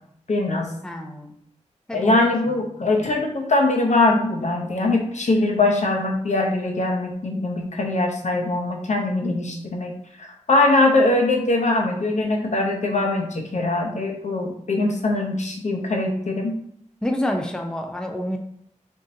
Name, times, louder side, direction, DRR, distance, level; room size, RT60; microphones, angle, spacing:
voice 1, 0.3-0.7 1.9-9.9 10.5-16.6, left 2 dB, 65° left, 2 dB, 0.7 m, -22 dB
voice 2, 0.8-1.4 1.9-2.2 2.5-2.6 17.0-18.4, left 1 dB, 5° left, 4 dB, 0.5 m, -28 dB
3.9 x 3.6 x 2.6 m, 0.69 s
wide cardioid pair, 80°, 13 cm